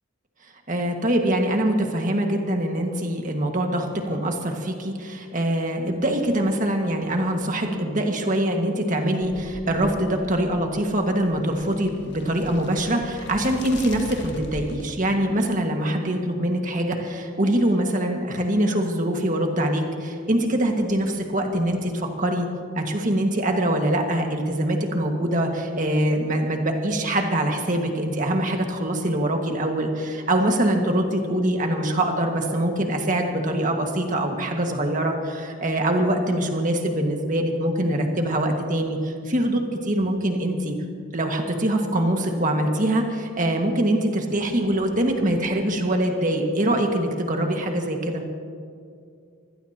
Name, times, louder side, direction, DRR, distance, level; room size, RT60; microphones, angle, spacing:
voice 1, 0.7-22.5 22.7-40.8 41.1-48.2, right 1 dB, 40° right, 2 dB, 1.8 m, -24 dB
sound 1, 9.2-14.9, left 1 dB, 55° left, 1.5 m, -40 dB
24.5 x 16.5 x 2.9 m, 2.3 s
head